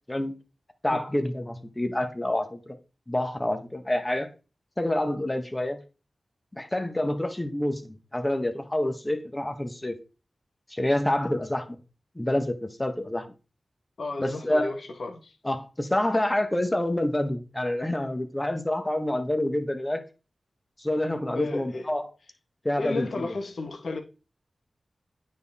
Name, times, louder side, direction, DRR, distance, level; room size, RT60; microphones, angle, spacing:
voice 1, 0.8-2.8 3.1-4.3 4.8-5.8 6.5-10.0 10.7-11.8 12.1-13.3 14.2-14.8 15.4-20.0 20.8-22.1 22.6-23.3, left 1 dB, 20° left, 1.5 m, -27 dB
voice 2, 14.0-15.4 21.3-21.9 22.8-24.0, left 3 dB, 80° left, 1.5 m, -33 dB
9.3 x 4.2 x 3.7 m
cardioid pair, 45°, 0 cm